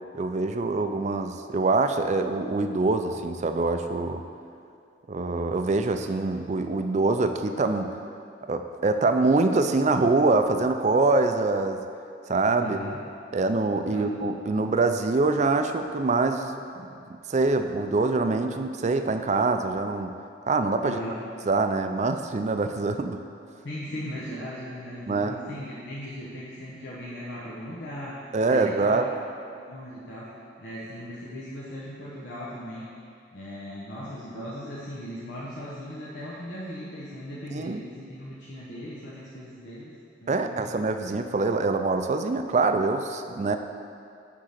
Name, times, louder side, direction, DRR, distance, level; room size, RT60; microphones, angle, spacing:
voice 1, 0.1-4.2 5.1-8.0 8.5-11.8 12.3-12.8 13.3-16.9 17.3-20.2 20.5-21.0 21.5-23.2 25.1-25.4 28.3-29.0 37.5-37.8 40.3-43.6, right 3 dB, 40° right, 7 dB, 0.4 m, -24 dB
voice 2, 12.6-13.0 13.9-14.1 14.5-14.7 20.8-21.1 23.6-29.0 29.6-30.3 30.6-32.9 33.3-39.9 40.2-40.7, equal, 85° left, -7 dB, 1.2 m, -38 dB
9.6 x 3.7 x 6.6 m, 2.5 s
head